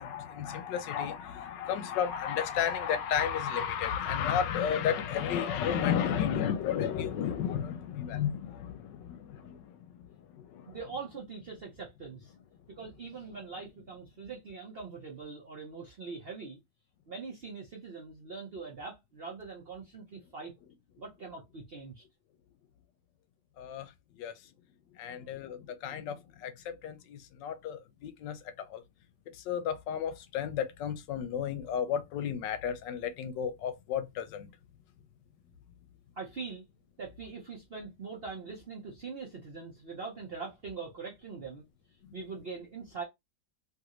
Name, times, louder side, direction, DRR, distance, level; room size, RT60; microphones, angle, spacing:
voice 1, 0.0-9.9 10.2-10.8 23.6-24.3 25.0-28.8 29.3-34.5, left 8 dB, 80° left, 1.2 m, -33 dB
voice 2, 10.6-12.3 12.8-16.6 17.1-20.5 21.0-22.0 25.1-25.4 36.1-36.6 37.0-41.7 42.1-43.0, right 4 dB, 50° right, 0.7 m, -42 dB
3.1 x 2.5 x 2.9 m
omnidirectional pair, 1.9 m